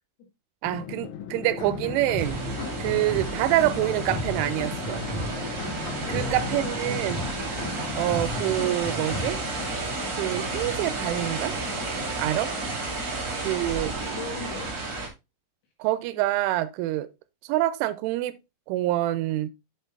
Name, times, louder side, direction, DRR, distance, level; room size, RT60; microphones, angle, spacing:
voice 1, 0.6-2.4 2.8-5.1 6.1-7.2 8.0-9.4 10.1-11.6 12.2-12.7 13.4-13.9 15.8-17.1 17.4-18.4 18.7-19.5, right 15 dB, 85° right, 3.0 m, -26 dB
Drum, 0.7-13.0, left 9 dB, 80° left, 3.4 m, -40 dB
sound 1, 1.6-9.3, left 1 dB, 45° left, 2.6 m, -35 dB
sound 2, 2.2-15.1, right 3 dB, 45° right, 1.1 m, -32 dB
voice 2, 5.7-7.2 13.9-14.9 16.1-16.2, left 6 dB, 65° left, 3.5 m, -40 dB
7.8 x 6.4 x 2.5 m
omnidirectional pair, 5.6 m